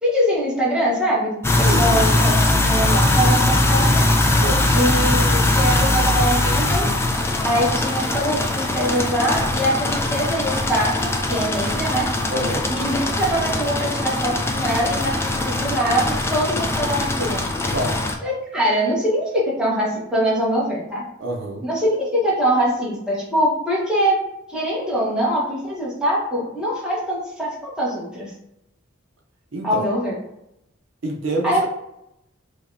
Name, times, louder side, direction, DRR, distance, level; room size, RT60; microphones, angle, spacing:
voice 1, 0.0-2.4 2.6-4.1 4.6-6.9 7.4-12.1 12.7-17.4 18.2-21.0 21.6-28.3 29.6-30.2 31.4-31.7, equal, 5° right, -6 dB, 1.0 m, -23 dB
sound 1, 1.4-18.1, left 1 dB, 10° left, 0.3 m, -21 dB
voice 2, 1.7-2.2 4.4-4.6 12.3-12.7 17.7-18.0 21.2-21.6 29.5-29.8 31.0-31.7, right 1 dB, 70° right, 1 dB, 0.7 m, -26 dB
4.8 x 2.2 x 2.6 m, 0.83 s
head